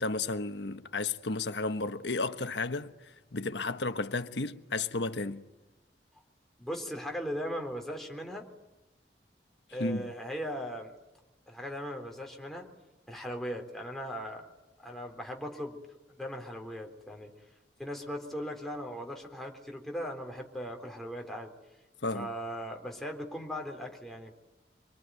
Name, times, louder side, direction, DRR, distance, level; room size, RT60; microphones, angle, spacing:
voice 1, 0.0-5.5 9.8-10.1 22.0-22.3, left 3 dB, 85° left, 1.3 m, -33 dB
voice 2, 6.6-8.5 9.7-11.0 11.5-12.7 13.1-14.5 14.8-15.8 16.1-17.3 17.8-21.5 22.1-24.3, equal, ahead, 3.7 m, -38 dB
26.0 x 23.0 x 9.4 m
head